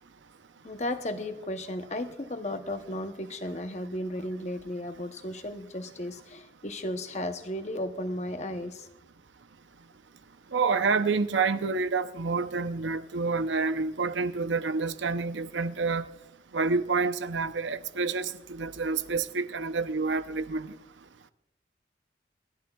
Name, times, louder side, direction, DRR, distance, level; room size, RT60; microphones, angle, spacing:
voice 1, 0.6-8.9, left 1 dB, 40° left, 0.8 m, -34 dB
voice 2, 10.5-16.1 16.5-20.8, right 4 dB, 85° right, 0.7 m, -28 dB
29.5 x 11.0 x 2.3 m
head